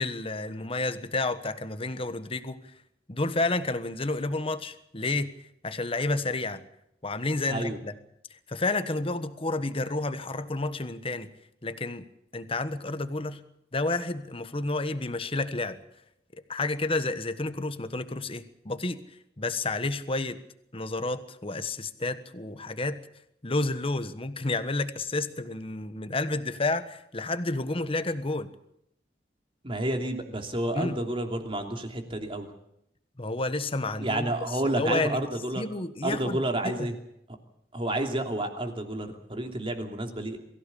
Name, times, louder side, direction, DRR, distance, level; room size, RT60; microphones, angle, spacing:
voice 1, 0.0-2.6 3.1-5.3 5.6-6.6 7.0-7.9 8.5-11.3 11.6-12.0 12.3-13.4 13.7-15.8 16.5-19.0 19.4-20.4 20.7-23.0 23.4-28.5 30.7-31.0 33.2-35.2 35.5-36.9, left 2 dB, 35° left, 11 dB, 1.3 m, -30 dB
voice 2, 29.6-32.5 34.0-35.6 36.0-36.9 37.7-40.4, right 1 dB, 30° right, 4 dB, 2.9 m, -30 dB
23.0 x 16.0 x 8.5 m, 0.79 s
head